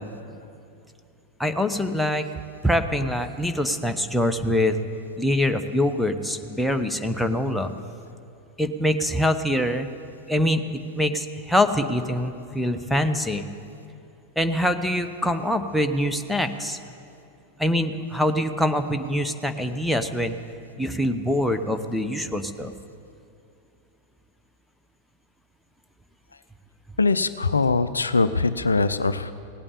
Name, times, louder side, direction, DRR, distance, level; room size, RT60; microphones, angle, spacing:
voice 1, 1.4-2.3 2.6-4.8 5.2-7.7 8.6-9.9 10.3-13.4 14.4-16.8 17.6-20.3 20.8-22.7, left 1 dB, ahead, 6 dB, 0.8 m, -24 dB
voice 2, 27.0-29.3, left 3 dB, 75° left, 13 dB, 0.4 m, -22 dB
17.0 x 8.8 x 8.5 m, 2.6 s
figure-of-eight pair, 90°, 0 cm